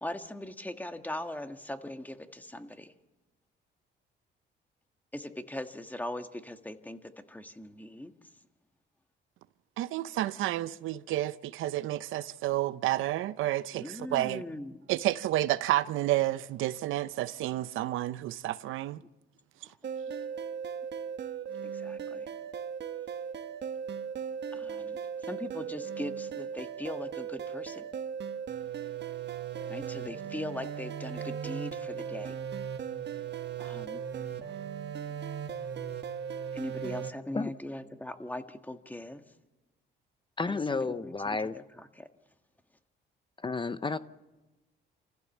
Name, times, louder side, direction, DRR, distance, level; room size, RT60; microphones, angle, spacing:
voice 1, 0.0-2.9 5.1-8.1 13.7-14.8 19.6-20.2 21.6-22.3 24.5-27.9 29.7-32.4 33.6-34.0 36.5-39.2 40.5-42.1, left 1 dB, 10° left, 1.6 m, -40 dB
voice 2, 9.8-14.4 14.9-19.0, right 15 dB, 85° right, 0.7 m, -30 dB
sound 1, 19.8-37.1, right 7 dB, 60° right, 1.3 m, -37 dB
voice 3, 40.4-41.6 43.4-44.0, left 4 dB, 25° left, 0.7 m, -31 dB
28.0 x 15.0 x 7.3 m
cardioid pair, 90°, 20 cm